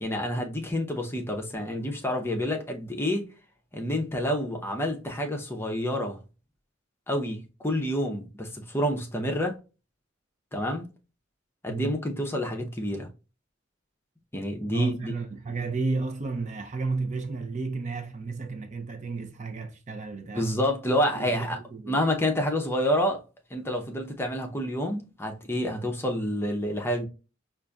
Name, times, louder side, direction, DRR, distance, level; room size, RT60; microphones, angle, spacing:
voice 1, 0.0-3.3 3.7-6.2 7.1-9.6 10.5-10.8 11.6-13.1 14.3-15.1 20.3-21.6 21.9-23.2 23.5-27.1, equal, 10° left, 0.7 m, -28 dB
voice 2, 14.7-20.5 21.2-22.0, right 3 dB, 40° right, 0.5 m, -33 dB
5.1 x 2.5 x 2.2 m
head